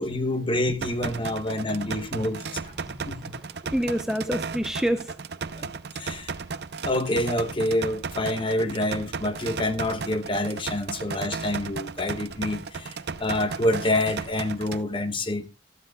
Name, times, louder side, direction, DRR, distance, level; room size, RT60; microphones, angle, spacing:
voice 1, 0.0-2.6 3.1-3.3 5.6-6.3 6.8-15.5, left 1 dB, 25° left, 1.0 m, -27 dB
sound 1, 0.8-14.8, right 5 dB, 60° right, 0.6 m, -35 dB
voice 2, 1.5-1.9 2.7-5.1, equal, 5° right, 0.6 m, -29 dB
14.0 x 13.0 x 2.3 m
head